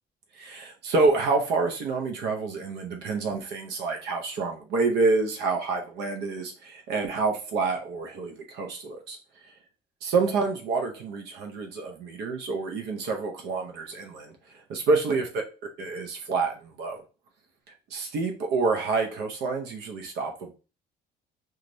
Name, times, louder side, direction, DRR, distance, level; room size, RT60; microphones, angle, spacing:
voice 1, 0.4-9.2 10.0-14.4 14.7-15.3 15.8-17.0 17.9-20.5, right 3 dB, 80° right, 4 dB, 0.7 m, -28 dB
3.0 x 2.4 x 2.6 m, 0.33 s
cardioid pair, 110°, 17 cm